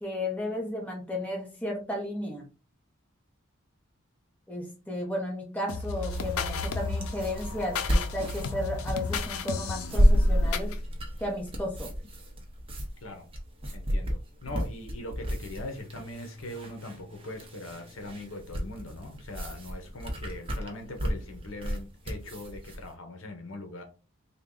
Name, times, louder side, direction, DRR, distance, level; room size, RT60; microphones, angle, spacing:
voice 1, 0.0-2.5 4.5-10.7 11.2-11.9, left 1 dB, 5° left, 0.9 m, -34 dB
sound 1, 5.7-10.8, left 4 dB, 90° left, 0.5 m, -34 dB
sound 2, 6.1-22.9, equal, 25° right, 0.7 m, -30 dB
voice 2, 13.7-23.8, left 1 dB, 70° left, 0.9 m, -41 dB
sound 3, 15.8-18.3, left 1 dB, 45° left, 2.2 m, -50 dB
3.5 x 2.3 x 3.7 m
head